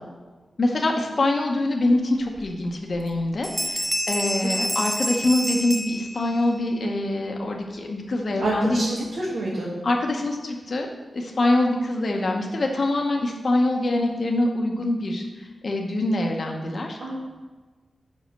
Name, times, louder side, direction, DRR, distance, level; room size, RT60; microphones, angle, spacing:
voice 1, 0.6-8.8 9.8-10.9 11.1-17.0, left 2 dB, 50° left, 1 dB, 0.8 m, -24 dB
Bell, 2.4-2.5 2.9-3.2 3.4-6.6, equal, ahead, 0.7 m, -28 dB
voice 2, 8.4-9.7 17.0-17.1, right 2 dB, 70° right, -7 dB, 1.7 m, -27 dB
5.6 x 5.2 x 6.5 m, 1.3 s
wide cardioid pair, 145°, 0 cm